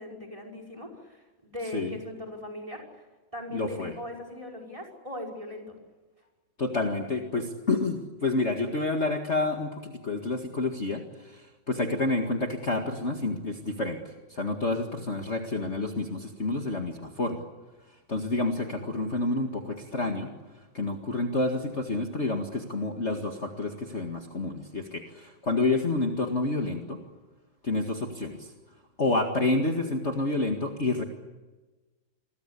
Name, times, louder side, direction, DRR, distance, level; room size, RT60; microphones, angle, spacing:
voice 1, 0.0-3.0 3.3-5.8, left 1 dB, 15° right, 2 dB, 5.7 m, -39 dB
voice 2, 3.5-3.9 6.6-14.0 14.3-17.4 18.1-20.3 20.7-27.0 27.6-28.5 29.0-31.0, left 2 dB, 35° left, 3 dB, 2.2 m, -29 dB
28.0 x 23.0 x 8.4 m, 1.2 s
omnidirectional pair, 2.2 m